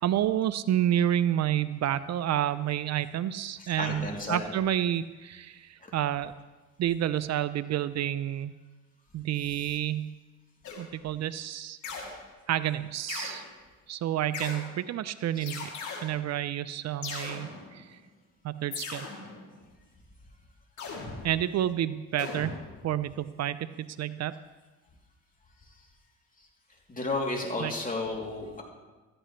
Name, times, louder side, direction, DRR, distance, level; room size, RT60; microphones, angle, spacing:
voice 1, 0.0-6.3 6.8-8.5 9.1-10.1 10.8-11.8 12.5-13.4 13.9-15.7 16.0-18.0 18.4-19.1 21.2-22.5 22.8-24.3 27.6-27.7, right 11 dB, 60° right, 14 dB, 0.5 m, -29 dB
voice 2, 3.8-4.4 26.9-28.6, left 2 dB, 25° left, -1 dB, 2.9 m, -32 dB
sound 1, 10.6-11.1 11.8-12.4 13.1-13.4 14.3-14.9 15.5-16.3 17.0-18.0 18.7-19.6 20.8-21.7 22.2-23.1, left 4 dB, 70° left, 2.8 m, -39 dB
16.0 x 13.5 x 3.2 m, 1.2 s
cardioid pair, 90°, 30 cm